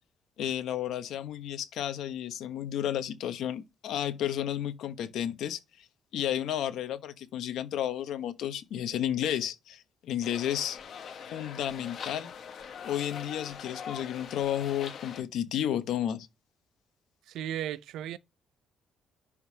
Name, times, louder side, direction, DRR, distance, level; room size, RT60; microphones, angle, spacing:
voice 1, 0.4-5.9 6.1-10.8 11.3-12.3 12.8-16.3, left 10 dB, 80° left, 0.9 m, -32 dB
sound 1, 10.2-15.2, left 7 dB, 55° left, 1.2 m, -42 dB
voice 2, 17.3-18.2, right 11 dB, 85° right, 0.4 m, -35 dB
11.0 x 3.7 x 2.7 m
cardioid pair, 135°, 0 cm